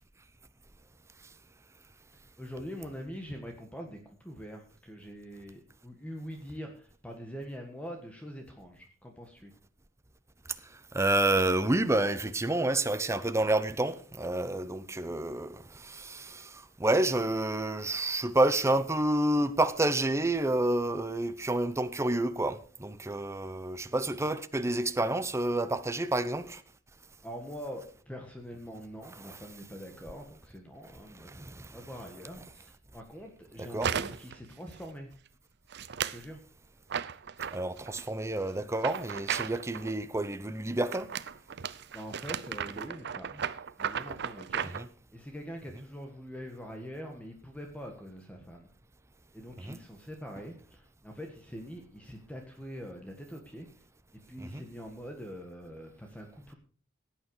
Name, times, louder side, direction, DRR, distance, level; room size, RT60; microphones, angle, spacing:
voice 1, 2.4-9.5 27.2-35.1 36.1-36.4 41.9-43.4 43.8-48.7 49.3-53.7 54.3-56.5, equal, 5° left, 1.5 m, -44 dB
voice 2, 10.6-26.6 31.3-31.8 33.6-33.9 37.5-41.1 44.8-44.9 49.6-49.8 54.4-54.6, right 2 dB, 15° right, 0.7 m, -29 dB
sound 1, 33.8-34.4 34.7-35.1 35.7-36.2 36.9-38.0 38.7-39.9 40.9-44.8, right 8 dB, 55° right, 0.6 m, -35 dB
17.0 x 9.1 x 4.8 m
head